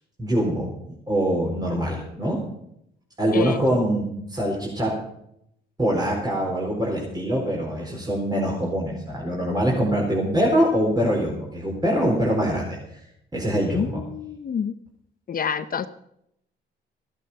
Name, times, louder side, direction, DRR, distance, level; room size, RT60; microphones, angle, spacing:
voice 1, 0.2-2.4 3.2-4.9 5.8-12.8 13.3-14.0, equal, 20° right, -3 dB, 4.4 m, -24 dB
voice 2, 3.3-3.8 13.7-14.7 15.3-15.9, left 7 dB, 45° left, 12 dB, 0.9 m, -28 dB
15.0 x 12.5 x 5.6 m, 0.75 s
cardioid pair, 90°, 20 cm